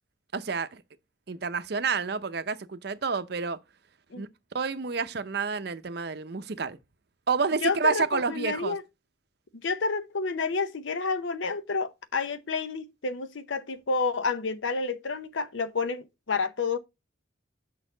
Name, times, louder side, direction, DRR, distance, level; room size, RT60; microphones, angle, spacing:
voice 1, 0.3-0.8 1.3-3.6 4.2-4.3 4.5-6.8 7.3-8.7, right 5 dB, 55° right, 0.6 m, -29 dB
voice 2, 7.6-8.8 9.5-16.8, left 4 dB, 75° left, 0.7 m, -29 dB
6.4 x 5.5 x 3.9 m
head